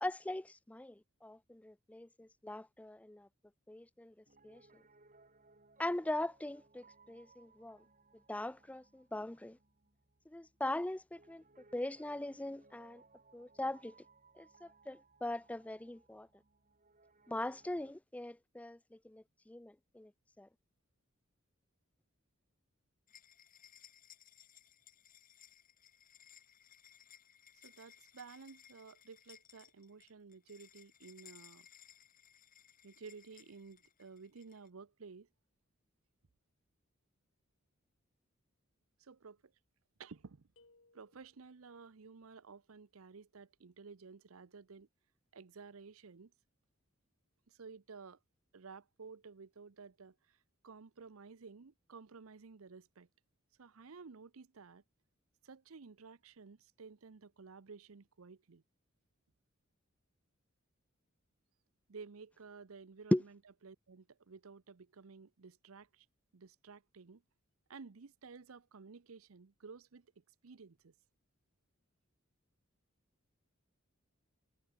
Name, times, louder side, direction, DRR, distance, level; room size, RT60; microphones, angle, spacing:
voice 1, 0.0-3.3 3.7-4.1 4.4-4.6 5.8-7.8 8.3-9.6 10.3-11.4 11.7-13.0 13.3-13.9 14.4-16.3 17.3-20.1 20.4-20.5 63.1-63.2, left 1 dB, 5° left, 0.4 m, -40 dB
Piano, 4.3-18.0, right 3 dB, 40° right, 5.4 m, -66 dB
sound 1, 23.1-34.7, left 9 dB, 40° left, 3.2 m, -61 dB
voice 2, 27.6-31.7 32.8-35.3 39.0-39.5 40.0-40.5 40.9-44.9 45.3-46.3 47.5-48.2 48.5-53.1 53.6-54.8 55.4-58.6 61.9-66.1 66.3-67.2 67.7-70.9, right 5 dB, 85° right, 0.7 m, -54 dB
sound 2, 40.6-41.7, left 3 dB, 65° left, 2.5 m, -68 dB
head